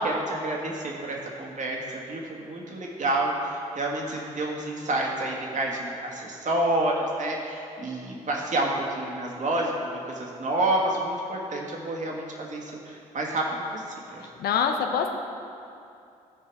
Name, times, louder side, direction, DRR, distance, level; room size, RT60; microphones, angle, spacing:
voice 1, 0.0-9.7 10.0-13.8 14.1-14.3, right 1 dB, 45° right, -1 dB, 1.9 m, -29 dB
voice 2, 14.4-15.1, left 7 dB, 60° left, 5 dB, 0.7 m, -24 dB
14.0 x 4.7 x 4.7 m, 2.6 s
hypercardioid pair, 45°, 18 cm